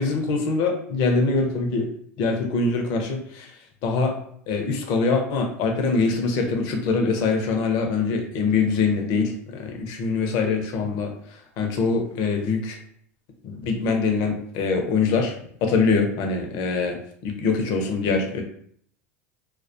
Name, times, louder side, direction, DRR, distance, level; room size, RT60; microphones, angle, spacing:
voice 1, 0.0-1.9 2.2-3.5 3.8-4.2 4.5-12.8 13.4-15.4 15.6-17.0 17.2-18.4, left 4 dB, 60° left, 3 dB, 0.6 m, -23 dB
2.2 x 2.1 x 2.5 m, 0.62 s
hypercardioid pair, 90°, 8 cm